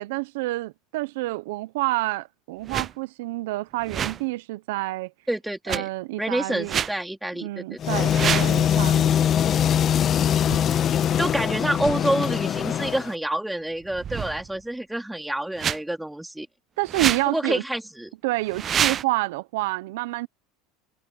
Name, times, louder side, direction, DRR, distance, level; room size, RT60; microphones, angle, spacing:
voice 1, 0.0-5.1 5.7-6.8 7.4-9.1 16.8-17.6 18.2-20.3, right 20 dB, 75° right, 0.9 m, -28 dB
sound 1, 2.6-2.9 3.8-4.2 5.7-5.8 6.6-6.9 8.0-8.6 10.4-10.6 11.7-12.0 13.9-14.6 15.6-15.8 16.8-17.3 18.4-19.0, right 8 dB, 35° right, 0.4 m, -27 dB
voice 2, 5.3-5.9 6.2-8.0 10.1-10.8 11.2-16.5 17.3-18.1, right 1 dB, 5° right, 3.9 m, -28 dB
sound 2, 7.8-13.1, left 9 dB, 40° left, 1.7 m, -22 dB
hypercardioid pair, 95°, 0 cm